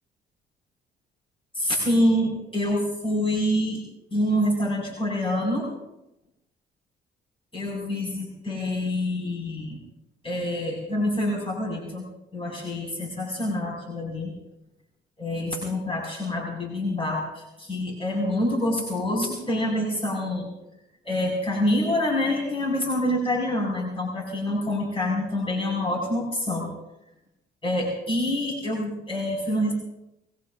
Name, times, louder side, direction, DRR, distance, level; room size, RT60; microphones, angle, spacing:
voice 1, 1.5-3.8 4.1-5.7 7.5-9.8 10.2-12.1 12.3-14.3 15.2-20.5 21.0-26.7 27.6-29.7, left 1 dB, 25° left, -2 dB, 5.7 m, -26 dB
22.5 x 21.0 x 2.6 m, 0.88 s
cardioid pair, 90°, 20 cm